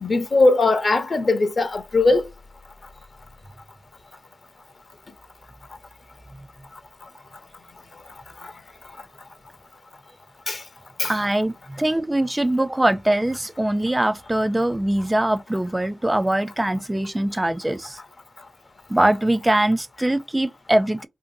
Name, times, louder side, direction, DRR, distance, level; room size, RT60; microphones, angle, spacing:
voice 1, 0.0-2.2 10.5-10.6 11.0-11.1, left 3 dB, 45° left, 0.5 m, -19 dB
voice 2, 11.0-18.0 18.9-21.1, right 1 dB, 15° right, 0.4 m, -22 dB
2.6 x 2.5 x 2.6 m
supercardioid pair, 40°, 0 cm